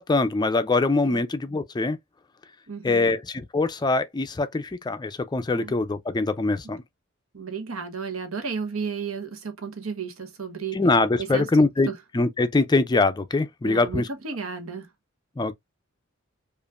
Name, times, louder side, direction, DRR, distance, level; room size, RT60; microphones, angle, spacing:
voice 1, 0.0-2.0 2.8-6.8 10.7-14.1 15.4-15.5, left 3 dB, 20° left, 0.4 m, -23 dB
voice 2, 2.7-3.1 5.6-5.7 7.3-10.8 11.2-11.9 13.6-14.9, right 5 dB, 80° right, 1.0 m, -33 dB
5.1 x 2.5 x 2.3 m
head